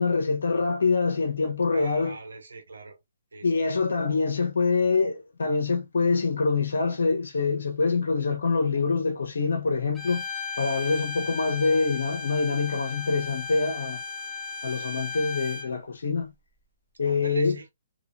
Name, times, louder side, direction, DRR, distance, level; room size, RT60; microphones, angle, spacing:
voice 1, 0.0-2.1 3.4-10.2 10.6-14.0 14.6-16.3 17.0-17.6, left 4 dB, 75° left, 1.0 m, -25 dB
voice 2, 1.7-3.0 3.3-3.7 17.0-17.7, right 3 dB, 80° right, 1.3 m, -43 dB
Bowed string instrument, 9.9-15.7, left 5 dB, 5° right, 1.2 m, -35 dB
3.2 x 2.9 x 2.6 m
hypercardioid pair, 140°, 0 cm